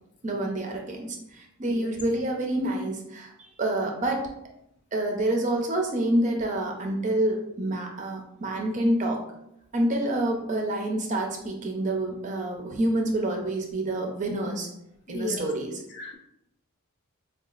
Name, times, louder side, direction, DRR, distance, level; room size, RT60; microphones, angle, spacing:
voice 1, 0.2-3.3 3.6-4.2 4.9-9.2 9.7-14.7 15.1-15.8, right 1 dB, 35° right, 1 dB, 0.4 m, -27 dB
voice 2, 15.1-15.5 15.9-16.2, left 3 dB, 50° left, 3 dB, 0.4 m, -35 dB
3.8 x 2.3 x 2.4 m, 0.80 s
head